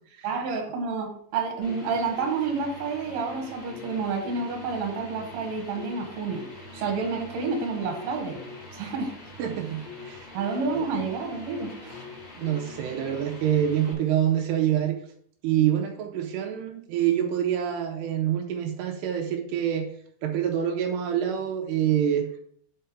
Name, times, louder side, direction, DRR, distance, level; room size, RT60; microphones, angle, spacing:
voice 1, 0.2-6.5 6.7-8.4 8.7-9.1 10.3-11.9, right 4 dB, 55° right, 2 dB, 2.1 m, -29 dB
sound 1, 1.6-13.9, left 2 dB, 20° left, 2.6 m, -43 dB
voice 2, 9.4-10.3 10.7-10.9 12.4-15.0 15.4-19.9 20.2-22.3, right 10 dB, 85° right, 3 dB, 2.7 m, -26 dB
5.7 x 5.3 x 5.1 m, 0.64 s
omnidirectional pair, 5.0 m